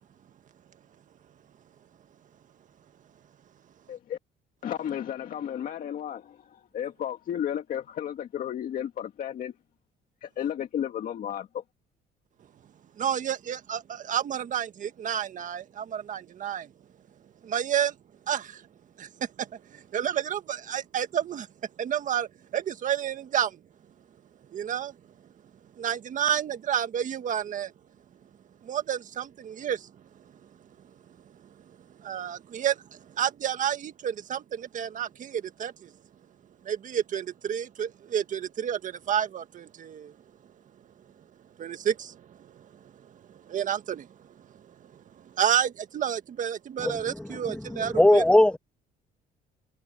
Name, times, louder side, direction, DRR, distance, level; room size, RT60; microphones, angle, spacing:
voice 1, 3.9-4.2 4.6-9.5 10.2-11.6, left 10 dB, 55° left, 2.0 m, -33 dB
voice 2, 13.0-16.7 17.4-17.9 18.3-18.7 19.0-21.5 21.8-23.6 24.5-25.0 25.8-27.7 28.6-29.9 31.4-31.5 32.0-35.9 36.6-40.1 41.6-42.7 43.1-44.1 44.4-44.9 45.2-48.2, right 9 dB, 50° right, 1.7 m, -30 dB
voice 3, 46.8-48.6, left 1 dB, 5° left, 2.7 m, -21 dB
cardioid pair, 110°, 17 cm